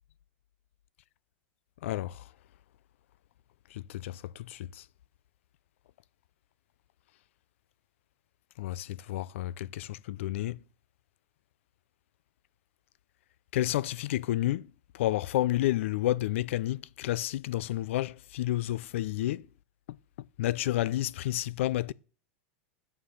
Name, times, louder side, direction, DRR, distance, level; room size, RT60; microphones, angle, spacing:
voice 1, 1.8-2.3 3.7-4.8 8.6-10.6 13.5-14.7 14.9-19.4 20.4-21.9, left 15 dB, 75° left, 0.5 m, -30 dB
11.5 x 7.4 x 6.5 m
supercardioid pair, 155°, 7 cm